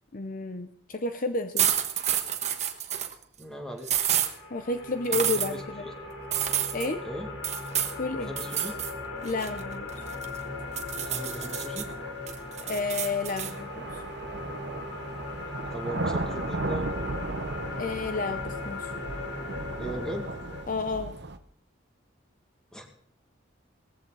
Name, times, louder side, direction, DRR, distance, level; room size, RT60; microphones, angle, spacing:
voice 1, 0.1-1.7 4.5-5.9 6.7-7.0 8.0-8.3 9.2-9.9 12.6-14.0 17.8-18.9 20.7-21.1, left 3 dB, 45° left, 9 dB, 0.8 m, -31 dB
sound 1, 1.6-3.1 3.8-4.3 5.1-5.5 6.3-6.9 7.4-8.0 8.4-8.9 9.3-10.4 10.8-11.8 12.3-13.5, right 10 dB, 35° right, 1.3 m, -28 dB
voice 2, 3.4-4.0 5.1-5.9 7.0-7.3 8.2-8.8 11.0-11.9 15.5-17.0 19.8-20.3 22.7-22.9, equal, 5° left, 2 dB, 2.3 m, -38 dB
sound 2, 3.9-20.6, left 3 dB, 75° left, 4.2 m, -38 dB
sound 3, 10.8-10.9 11.9-21.4, right 2 dB, 55° right, 0.9 m, -36 dB
18.5 x 14.5 x 4.1 m, 0.63 s
head